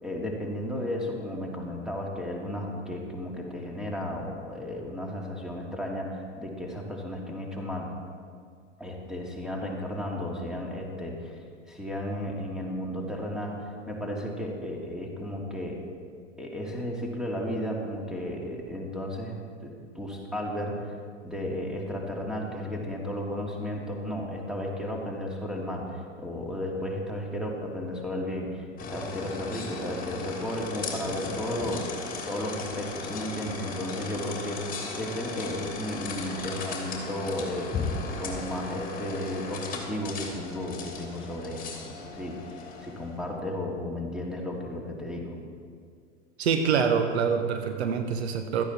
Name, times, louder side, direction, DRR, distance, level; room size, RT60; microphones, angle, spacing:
voice 1, 0.0-7.9 8.8-11.4 11.7-15.8 16.4-19.3 19.6-20.9 21.2-37.9 38.2-45.3, left 1 dB, ahead, -1 dB, 2.5 m, -34 dB
sound 1, 28.8-43.2, left 4 dB, 25° left, 2.8 m, -36 dB
voice 2, 46.4-48.6, right 6 dB, 60° right, 6 dB, 1.1 m, -25 dB
16.5 x 13.5 x 4.3 m, 2.2 s
figure-of-eight pair, 90°, 37 cm